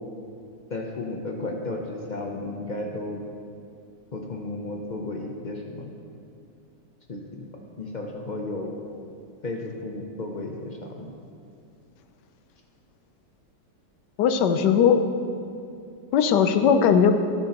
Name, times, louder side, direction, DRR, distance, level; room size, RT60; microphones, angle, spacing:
voice 1, 0.7-3.2 4.1-5.9 7.1-7.5 7.8-8.8 9.4-11.1, left 2 dB, 60° left, 1 dB, 0.4 m, -33 dB
voice 2, 14.2-15.0 16.1-17.1, left 7 dB, 85° left, 8 dB, 1.3 m, -18 dB
11.5 x 9.6 x 2.9 m, 2.4 s
omnidirectional pair, 1.8 m